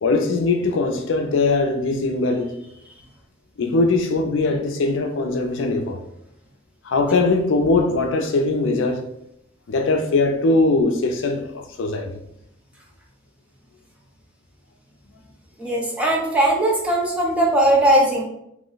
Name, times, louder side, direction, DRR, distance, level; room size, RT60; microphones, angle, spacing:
voice 1, 0.0-2.6 3.6-6.0 6.8-9.0 9.7-12.1, left 3 dB, 75° left, 0.4 m, -21 dB
voice 2, 15.6-18.2, right 1 dB, 5° right, 0.7 m, -19 dB
3.0 x 2.1 x 3.8 m
head